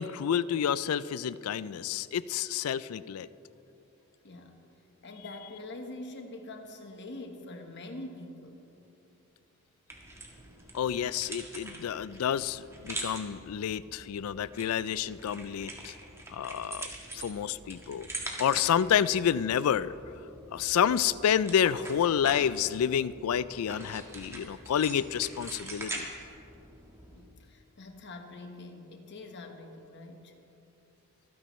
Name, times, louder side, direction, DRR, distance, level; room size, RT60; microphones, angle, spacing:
voice 1, 0.0-3.3 10.7-15.9 16.3-18.1 18.4-19.9 20.5-26.1, left 8 dB, 80° left, 18 dB, 0.4 m, -29 dB
voice 2, 4.2-4.6 5.0-8.7 27.1-30.3, left 2 dB, 55° left, 5 dB, 1.1 m, -44 dB
sound 1, 9.9-27.2, right 2 dB, 15° right, 1.5 m, -44 dB
25.0 x 10.0 x 3.1 m, 2.9 s
head